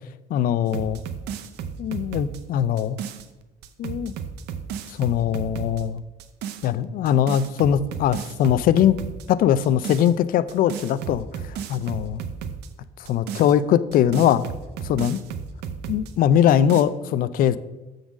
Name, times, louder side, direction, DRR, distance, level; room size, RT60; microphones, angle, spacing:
voice 1, 0.3-1.0 1.8-3.0 3.8-4.1 4.9-6.0 6.6-9.0 9.3-12.2 13.1-14.4 14.8-15.2 15.9-17.6, left 10 dB, 55° left, 15 dB, 0.4 m, -21 dB
sound 1, 0.7-3.3 3.6-5.8 6.2-6.7 7.1-9.3 9.6-10.1 10.5-12.7 13.1-16.1 16.5-16.8, right 7 dB, 80° right, 0.6 m, -34 dB
7.1 x 3.9 x 6.3 m, 1.1 s
cardioid pair, 110°, 17 cm